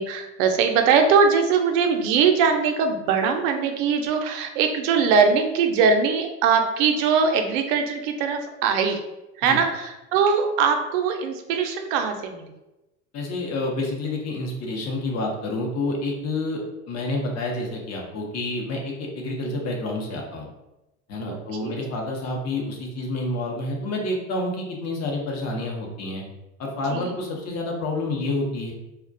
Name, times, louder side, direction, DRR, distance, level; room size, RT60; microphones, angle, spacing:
voice 1, 0.0-9.0 9.4-12.5 19.4-19.6 21.3-21.7 26.9-27.2, right 5 dB, 70° right, 5 dB, 0.5 m, -21 dB
voice 2, 13.1-20.5 21.1-26.2 26.6-28.7, left 2 dB, 40° left, 0 dB, 0.7 m, -28 dB
2.3 x 2.1 x 2.5 m, 0.97 s
supercardioid pair, 95°, 40 cm